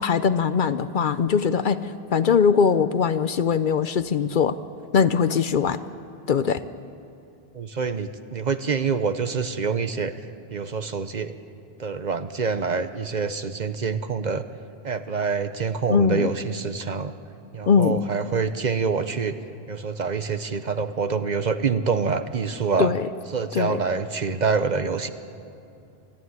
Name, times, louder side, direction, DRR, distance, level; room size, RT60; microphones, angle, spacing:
voice 1, 0.0-1.8 2.1-4.6 4.9-5.8 6.3-6.6 15.9-16.3 17.7-18.0 22.8-23.1 23.5-23.8, left 6 dB, 60° left, 13 dB, 0.7 m, -21 dB
voice 2, 7.5-10.1 10.5-11.4 11.8-14.5 14.8-17.1 17.5-19.3 19.7-22.9 23.3-25.1, right 5 dB, 50° right, 10 dB, 0.8 m, -26 dB
25.5 x 11.5 x 9.6 m, 2.7 s
omnidirectional pair, 1.0 m